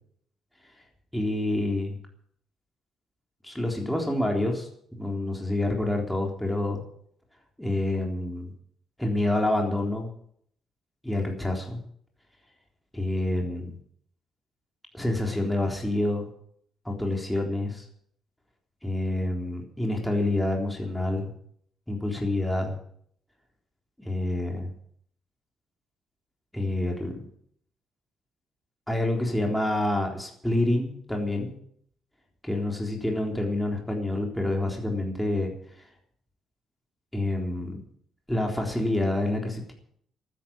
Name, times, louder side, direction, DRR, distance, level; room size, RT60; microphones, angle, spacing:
voice 1, 1.1-1.9 3.4-6.8 7.6-8.5 9.0-10.1 11.0-11.8 12.9-13.8 14.9-16.3 16.9-17.9 18.8-21.3 21.9-22.8 24.0-24.7 26.5-27.3 28.9-31.5 32.4-35.5 37.1-37.8 38.3-39.7, left 1 dB, 5° left, 0 dB, 3.8 m, -27 dB
12.5 x 10.5 x 8.8 m, 0.66 s
cardioid pair, 90°, 0 cm